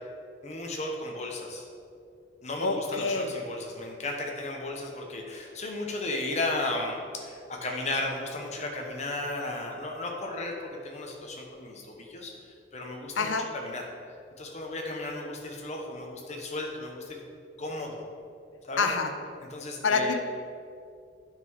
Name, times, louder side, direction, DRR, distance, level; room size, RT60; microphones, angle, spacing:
voice 1, 0.4-1.6 2.4-13.8 14.4-17.2 17.6-18.0 18.6-18.9 19.5-20.1, left 2 dB, 35° left, 1 dB, 1.1 m, -35 dB
voice 2, 2.6-3.3 13.2-13.5 18.8-19.1 19.8-20.2, left 4 dB, 90° left, 7 dB, 0.7 m, -26 dB
9.2 x 5.9 x 4.7 m, 2.4 s
head